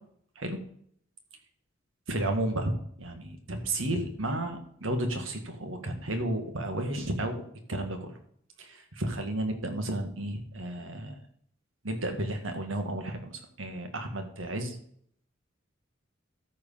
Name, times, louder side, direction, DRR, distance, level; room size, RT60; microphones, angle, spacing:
voice 1, 2.1-2.7 3.0-7.4 7.7-8.1 8.6-11.2 11.8-14.8, right 1 dB, 75° right, 5 dB, 1.9 m, -32 dB
13.5 x 4.8 x 5.6 m, 0.65 s
head